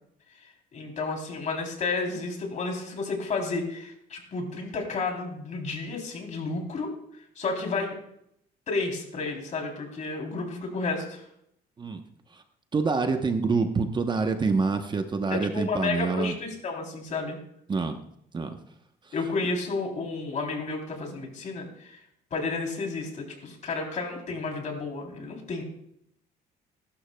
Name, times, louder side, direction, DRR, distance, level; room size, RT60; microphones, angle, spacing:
voice 1, 0.7-6.9 7.3-7.9 8.7-11.2 15.3-17.4 19.1-22.0 22.3-25.6, left 3 dB, 45° left, 1 dB, 3.4 m, -31 dB
voice 2, 12.7-16.3 17.7-18.0 18.3-18.6 19.1-19.2, right 4 dB, 25° right, 6 dB, 0.9 m, -26 dB
20.0 x 12.0 x 2.3 m, 0.75 s
cardioid pair, 110°, 17 cm